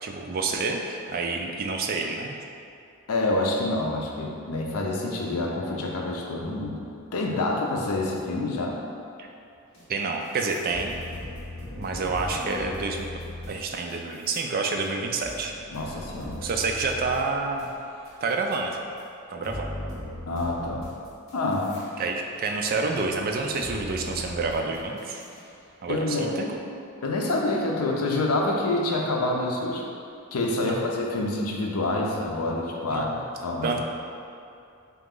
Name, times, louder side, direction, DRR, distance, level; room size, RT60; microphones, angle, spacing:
voice 1, 0.0-2.4 9.2-9.3 9.9-11.0 11.8-13.1 13.5-15.5 16.4-17.7 18.2-18.8 19.3-19.7 22.0-25.2 25.8-26.6 30.6-30.9 32.9-33.2 33.6-33.8, right 3 dB, 40° right, 2 dB, 0.3 m, -28 dB
voice 2, 3.1-6.8 7.1-8.8 15.7-16.4 20.3-20.9 21.3-21.8 25.9-26.5 27.0-29.8 30.3-33.1 33.4-33.8, left 2 dB, 90° left, -1 dB, 0.6 m, -27 dB
sound 1, 9.7-9.8 10.2-18.5 19.0-19.1 19.4-21.8 22.2-25.5, left 1 dB, 65° left, 1.1 m, -39 dB
3.7 x 3.0 x 3.7 m, 2.5 s
head